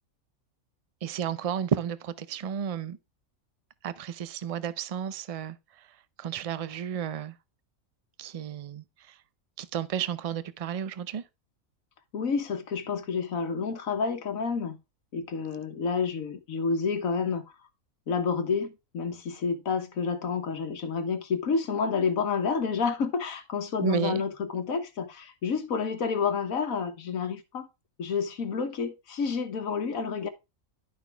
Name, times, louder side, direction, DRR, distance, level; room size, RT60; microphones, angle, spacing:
voice 1, 1.0-3.0 3.8-5.6 6.2-7.3 8.2-8.8 9.6-11.2 23.8-24.2, right 8 dB, 50° right, 0.4 m, -32 dB
voice 2, 12.1-14.8 15.1-17.4 18.1-27.7 28.0-30.3, left 5 dB, 80° left, 1.6 m, -29 dB
11.5 x 6.0 x 3.4 m
omnidirectional pair, 1.4 m